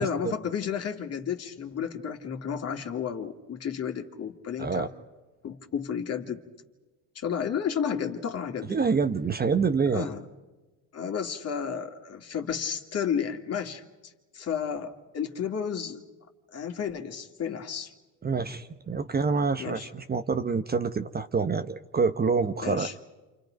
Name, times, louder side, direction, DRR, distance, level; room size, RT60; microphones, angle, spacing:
voice 1, 0.0-4.9 5.4-6.4 7.1-8.8 9.9-10.3 10.9-16.0 16.5-17.9 19.6-19.9 22.6-22.9, left 7 dB, 40° left, 4 dB, 2.4 m, -32 dB
voice 2, 8.7-10.1 18.2-22.9, right 5 dB, 25° right, 9 dB, 0.9 m, -26 dB
28.5 x 27.5 x 5.3 m, 1.2 s
supercardioid pair, 95°, 39 cm